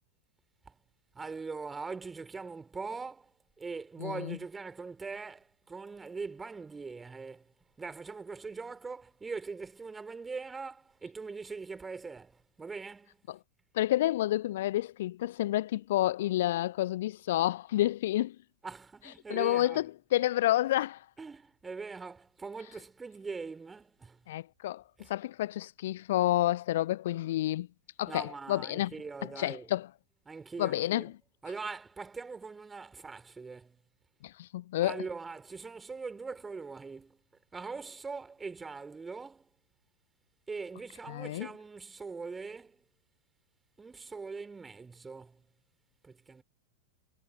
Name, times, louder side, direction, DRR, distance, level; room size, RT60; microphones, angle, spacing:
voice 1, 1.1-13.2 18.6-19.8 21.2-24.2 25.0-25.1 28.1-29.7 30.2-31.1 31.4-33.8 34.8-37.2 37.5-39.5 40.5-42.8 43.8-45.5 46.0-46.4, right 4 dB, 15° right, 3.3 m, -42 dB
voice 2, 4.0-4.4 13.7-18.4 19.3-19.9 20.1-21.0 24.3-24.8 25.1-27.7 28.0-28.9 29.4-29.9 30.6-31.1 34.2-35.0 41.1-41.5, left 14 dB, 55° left, 0.7 m, -29 dB
figure-of-eight pair, 90°, 0 cm